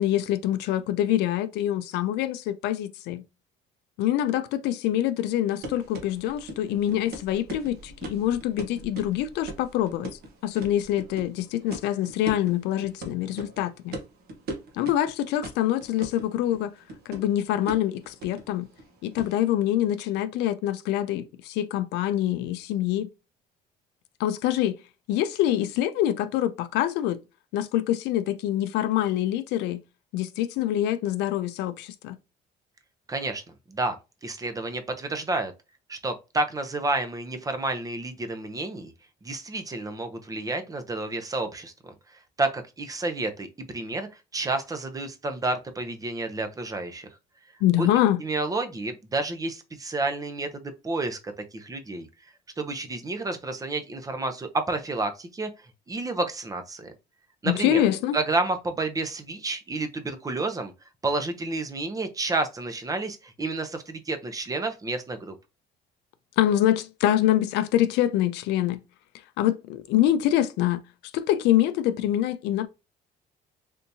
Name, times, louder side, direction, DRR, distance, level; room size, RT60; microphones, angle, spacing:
voice 1, 0.0-3.2 4.0-10.1 10.4-14.0 14.7-16.7 17.1-18.7 19.0-23.1 24.2-24.8 25.1-27.2 27.5-29.8 30.1-32.2 47.6-48.2 57.4-58.2 66.4-68.8 69.4-70.8 71.1-72.7, left 12 dB, 85° left, 0.4 m, -25 dB
sound 1, 5.6-19.5, right 1 dB, 70° right, 0.9 m, -41 dB
voice 2, 33.1-33.4 33.7-34.0 34.2-35.5 35.9-38.9 39.2-47.1 47.8-47.9 48.2-52.1 52.6-55.5 55.9-56.9 57.4-57.8 58.1-60.7 61.0-65.4, right 2 dB, 20° right, 0.6 m, -30 dB
3.5 x 2.8 x 2.7 m
cardioid pair, 110°, 17 cm